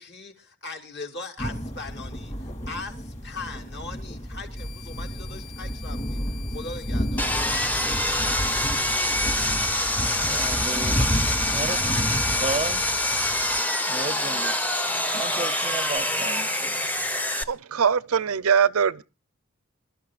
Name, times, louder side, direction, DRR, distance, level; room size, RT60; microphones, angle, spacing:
voice 1, 0.0-6.2 6.5-7.3, left 3 dB, 50° left, 2.5 m, -39 dB
sound 1, 1.4-13.6, equal, 30° left, 2.7 m, -31 dB
sound 2, 4.6-16.0, left 11 dB, 85° left, 2.2 m, -47 dB
Sawing, 7.2-17.4, left 1 dB, 10° left, 0.8 m, -25 dB
voice 2, 10.1-11.2 11.5-11.9 12.3-12.8 13.9-14.5 15.1-16.9, right 3 dB, 25° right, 0.6 m, -33 dB
voice 3, 17.3-19.0, right 7 dB, 75° right, 0.6 m, -22 dB
26.0 x 12.5 x 2.4 m
head